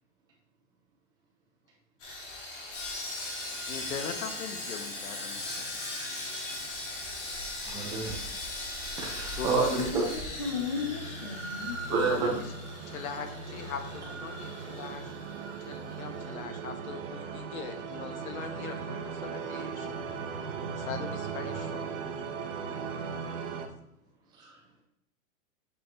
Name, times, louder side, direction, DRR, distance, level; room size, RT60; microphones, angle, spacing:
Sawing, 2.0-16.3 16.5-16.7 17.2-17.3, left 1 dB, 60° left, 3.1 m, -39 dB
voice 1, 3.7-5.9 9.3-9.9 11.9-12.5 12.8-15.1 15.7-19.9 20.8-21.9, left 6 dB, 85° left, 7 dB, 1.3 m, -40 dB
voice 2, 7.6-8.2 9.0-10.0 11.9-12.4 24.4-24.5, right 4 dB, 10° right, -2 dB, 0.7 m, -29 dB
sound 1, 9.3-23.7, right 5 dB, 60° right, 1.3 m, -39 dB
voice 3, 10.4-12.4, left 5 dB, 25° left, 2 dB, 0.3 m, -35 dB
8.3 x 6.9 x 2.9 m, 0.79 s
supercardioid pair, 175°, 41 cm